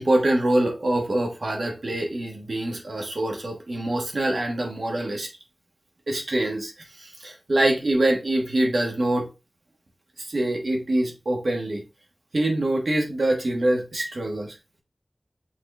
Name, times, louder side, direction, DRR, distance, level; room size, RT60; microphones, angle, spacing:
voice 1, 0.0-5.3 6.1-9.3 10.3-11.8 12.3-14.5, right 1 dB, 75° right, 1 dB, 1.3 m, -24 dB
6.0 x 3.7 x 2.3 m, 0.27 s
wide cardioid pair, 50°, 0 cm